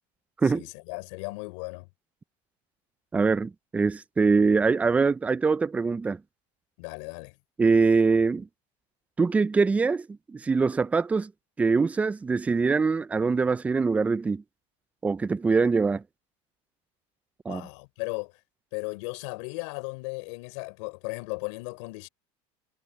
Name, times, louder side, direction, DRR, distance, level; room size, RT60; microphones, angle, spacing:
voice 1, 0.5-1.9 6.8-7.3 17.5-18.3 18.7-22.1, left 29 dB, 75° left, 3.8 m, -36 dB
voice 2, 3.1-6.2 7.6-8.5 9.2-11.3 11.6-14.4 15.0-16.0 17.5-17.7, right 4 dB, 10° right, 0.3 m, -23 dB
supercardioid pair, 145°, 15 cm